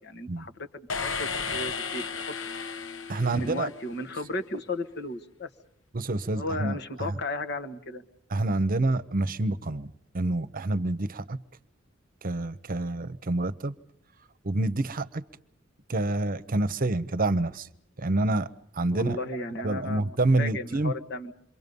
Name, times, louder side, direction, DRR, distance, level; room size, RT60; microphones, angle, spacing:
voice 1, 0.0-2.4 3.2-5.5 6.3-8.0 18.9-21.3, left 2 dB, 60° left, 6 dB, 1.5 m, -35 dB
sound 1, 0.9-4.1, left 5 dB, 80° left, 1.0 m, -34 dB
voice 2, 3.1-3.7 5.9-7.1 8.3-11.4 12.2-13.7 14.4-15.2 15.9-17.7 18.0-18.5 18.7-19.2 19.6-20.9, right 2 dB, 45° right, 13 dB, 0.8 m, -27 dB
27.5 x 24.0 x 5.4 m, 0.73 s
head